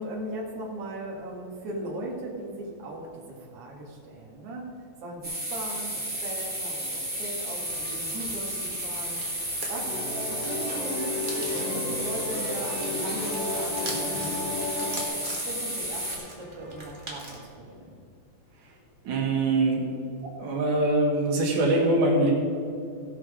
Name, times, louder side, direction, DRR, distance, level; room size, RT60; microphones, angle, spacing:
voice 1, 0.0-4.7 5.0-9.2 9.7-9.9 10.3-14.4 14.8-14.9 15.3-18.0, right 1 dB, 55° right, -3 dB, 2.8 m, -38 dB
sound 1, 5.2-16.2, right 1 dB, 5° right, 2.5 m, -32 dB
sound 2, 7.6-17.5, right 1 dB, 20° right, 1.5 m, -42 dB
sound 3, 9.8-15.1, left 3 dB, 80° left, 4.6 m, -33 dB
voice 2, 19.0-19.9 20.4-22.3, right 2 dB, 90° right, -1 dB, 3.2 m, -23 dB
16.0 x 6.2 x 5.0 m, 2.4 s
omnidirectional pair, 3.4 m